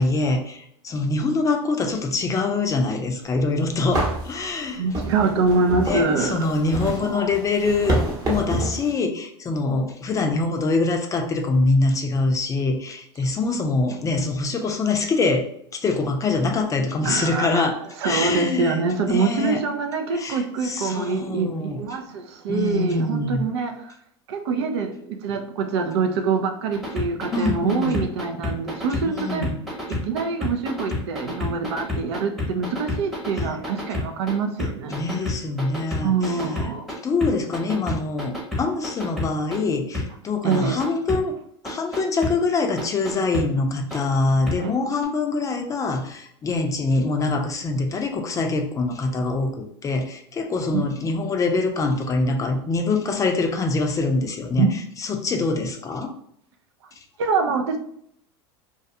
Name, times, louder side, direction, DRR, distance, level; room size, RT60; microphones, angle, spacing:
voice 1, 0.0-4.8 5.8-8.0 8.3-15.5 15.7-17.7 18.0-19.6 20.1-21.8 22.5-23.5 27.3-28.1 29.1-29.6 34.9-36.4 37.0-41.4 41.6-54.7 55.0-56.1, left 3 dB, 25° left, 4 dB, 0.4 m, -24 dB
sound 1, 3.4-3.5 3.9-8.9, right 1 dB, 25° right, 0.9 m, -28 dB
voice 2, 4.8-6.5 6.9-7.4 17.0-24.0 24.3-29.5 29.9-35.0 36.0-36.9 40.4-40.8 44.6-44.7 50.7-50.8 54.5-54.8 57.2-57.8, right 4 dB, 75° right, 6 dB, 0.4 m, -25 dB
sound 2, 26.7-34.3 34.6-36.9 37.2-39.6 39.9-40.0 40.5-41.2 41.6-42.3 42.8-43.4 43.9-44.0 44.5-44.6 45.0-45.1, left 2 dB, ahead, 0.8 m, -28 dB
2.3 x 2.2 x 2.7 m, 0.69 s
hypercardioid pair, 100°, 14 cm